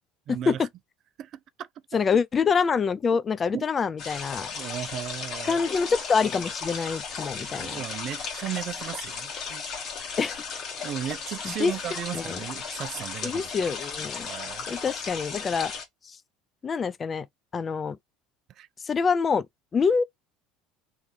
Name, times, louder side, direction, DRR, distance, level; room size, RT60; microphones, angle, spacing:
voice 1, 0.3-0.7 1.2-2.0 3.5-3.6 4.5-5.7 7.3-9.6 10.8-13.7 14.2-14.7 14.9-15.0 18.5-18.7, right 11 dB, 50° right, 0.3 m, -36 dB
voice 2, 1.9-4.5 5.5-7.8 10.2-10.3 11.4-11.7 12.1-12.4 13.2-14.3 14.7-15.7 16.1-16.2 16.6-17.3 17.5-18.0 18.8-19.5 19.7-20.0, left 5 dB, 30° left, 0.4 m, -25 dB
sound 1, 4.0-15.8, left 5 dB, 50° left, 1.5 m, -35 dB
3.1 x 3.1 x 3.4 m
hypercardioid pair, 75°, 0 cm